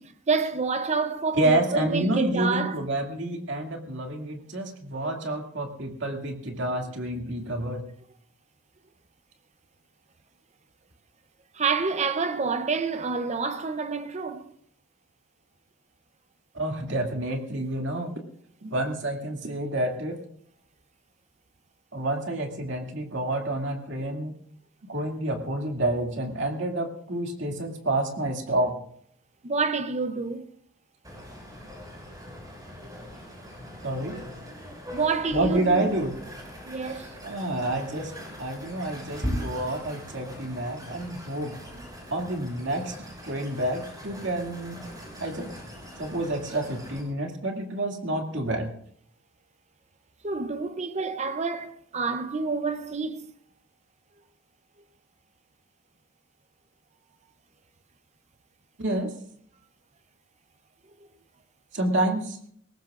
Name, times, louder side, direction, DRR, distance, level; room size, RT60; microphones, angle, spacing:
voice 1, 0.3-2.8 11.5-14.5 29.4-30.5 34.9-35.9 36.7-37.1 50.2-53.3, right 4 dB, 35° right, 0.7 m, -28 dB
voice 2, 1.4-7.8 16.5-18.1 18.6-20.2 21.9-24.3 24.9-28.7 33.8-34.2 35.3-36.1 37.2-38.1 38.4-41.5 42.1-42.9 43.2-44.8 45.2-45.5 46.0-48.7 58.8-59.1 61.7-62.4, right 1 dB, 65° right, 2.4 m, -28 dB
sound 1, 31.0-47.0, equal, 20° right, 5.9 m, -40 dB
22.0 x 18.5 x 2.5 m
head